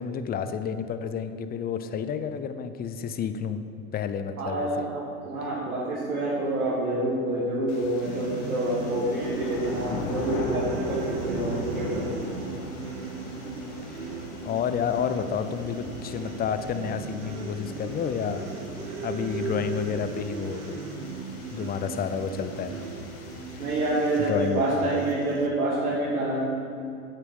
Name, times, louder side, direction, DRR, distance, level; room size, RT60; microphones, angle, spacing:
voice 1, 0.0-3.6 3.9-4.9 13.9-14.1 14.4-18.5 19.0-20.9 21.5-22.8 23.5-23.7 24.3-24.6 24.9-25.0, left 7 dB, 20° left, 10 dB, 0.5 m, -30 dB
voice 2, 4.4-12.1 23.6-26.4, right 1 dB, 90° right, -7 dB, 2.0 m, -27 dB
sound 1, 7.7-24.3, left 4 dB, 55° left, 1.3 m, -40 dB
sound 2, 8.0-25.5, right 5 dB, 75° right, 1.1 m, -37 dB
8.3 x 7.5 x 5.2 m, 2.7 s
hypercardioid pair, 95°, 43 cm